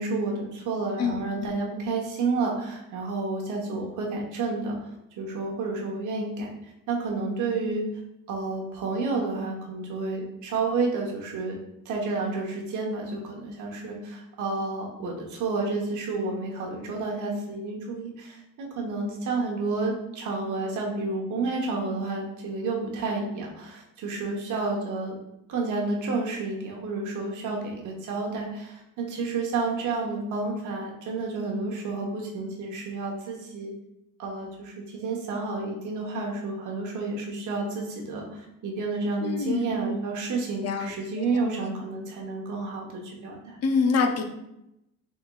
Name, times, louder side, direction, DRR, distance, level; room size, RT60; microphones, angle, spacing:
voice 1, 0.0-4.8 5.2-6.5 6.9-7.9 8.3-11.6 11.8-25.1 25.5-33.7 34.2-43.6, right 3 dB, 75° right, -1 dB, 1.0 m, -30 dB
voice 2, 1.0-1.5 39.2-39.7 40.6-40.9 43.6-44.2, left 5 dB, 55° left, 4 dB, 0.6 m, -25 dB
4.1 x 3.7 x 2.3 m, 0.85 s
cardioid pair, 90°, 30 cm